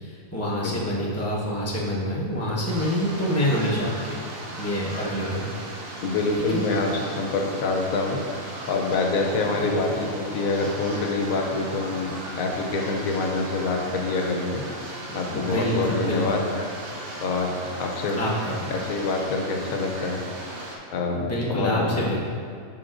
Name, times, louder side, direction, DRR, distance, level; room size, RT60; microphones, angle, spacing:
voice 1, 0.0-4.2 4.6-5.5 6.4-6.6 9.5-9.7 15.3-16.2 18.2-18.7 21.2-22.2, equal, 10° left, -6 dB, 0.9 m, -26 dB
sound 1, 2.7-20.8, right 1 dB, 50° right, 0.9 m, -37 dB
voice 2, 6.0-8.2 8.7-12.1 12.4-14.6 15.1-16.4 17.2-17.5 17.8-18.2 18.7-20.2 20.9-21.9, left 3 dB, 80° left, 2 dB, 1.1 m, -26 dB
10.5 x 3.7 x 2.5 m, 2.3 s
omnidirectional pair, 1.4 m